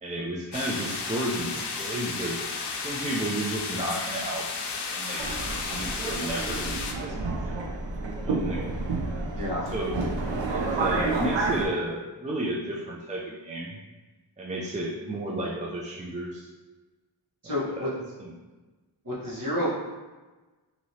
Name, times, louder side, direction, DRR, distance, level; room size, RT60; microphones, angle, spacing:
voice 1, 0.0-2.4 2.8-4.5 4.9-5.2 5.7-7.2 7.5-7.7 8.1-8.7 9.6-10.2 10.5-13.7 14.4-16.5 17.4-18.3, right 1 dB, 15° right, -3 dB, 0.4 m, -33 dB
sound 1, 0.5-6.9, left 4 dB, 65° left, 0.5 m, -33 dB
Subway metro underground, 5.2-11.7, right 3 dB, 80° right, 0.6 m, -30 dB
voice 2, 9.3-9.7 17.4-17.9 19.0-19.7, left 1 dB, 45° right, -8 dB, 1.3 m, -29 dB
3.0 x 2.7 x 2.7 m, 1.2 s
cardioid pair, 50°, 45 cm